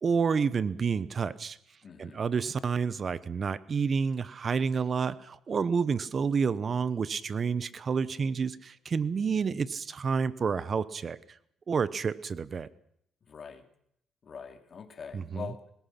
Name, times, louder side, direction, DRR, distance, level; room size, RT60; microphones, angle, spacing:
voice 1, 0.0-1.6 2.0-11.2 11.7-12.7 15.1-15.5, right 5 dB, 45° right, 16 dB, 1.0 m, -29 dB
voice 2, 1.8-2.3 13.2-13.7 14.2-15.6, left 6 dB, 50° left, 6 dB, 2.9 m, -43 dB
26.0 x 20.0 x 6.0 m, 0.71 s
cardioid pair, 90°, 0 cm